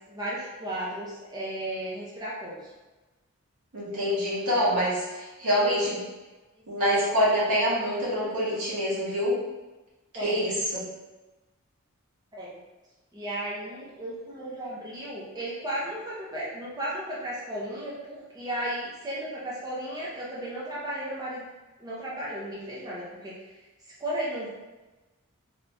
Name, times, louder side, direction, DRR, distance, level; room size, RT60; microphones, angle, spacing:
voice 1, 0.1-2.6 5.4-5.8 10.1-10.4 12.3-12.5 13.1-21.5 21.8-23.3 24.0-24.5, right 1 dB, 15° right, -7 dB, 0.5 m, -34 dB
voice 2, 3.7-6.0 6.7-9.3 10.2-10.8, equal, 85° right, -8 dB, 1.4 m, -26 dB
3.4 x 2.8 x 2.5 m, 1.1 s
head